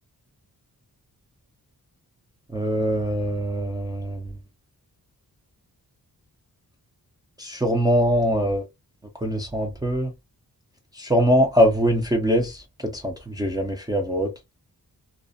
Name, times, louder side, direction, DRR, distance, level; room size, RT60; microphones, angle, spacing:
voice 1, 2.5-4.2 7.4-8.7 9.2-10.1 11.0-14.3, equal, 10° right, 0.4 m, -22 dB
2.5 x 2.0 x 2.5 m
wide cardioid pair, 165°, 38 cm